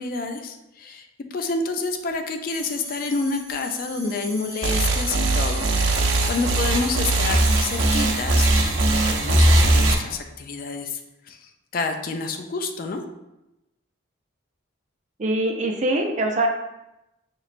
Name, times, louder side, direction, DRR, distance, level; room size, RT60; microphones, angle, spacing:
voice 1, 0.0-5.7 6.0-8.8 9.0-13.0, left 3 dB, 45° left, 5 dB, 0.3 m, -29 dB
sound 1, 2.5-8.0, right 1 dB, 5° right, 1.5 m, -39 dB
sound 2, 4.6-9.9, right 2 dB, 80° right, 0.6 m, -20 dB
voice 2, 15.2-16.5, right 1 dB, 35° right, 2 dB, 0.5 m, -23 dB
5.3 x 3.0 x 2.4 m, 0.92 s
head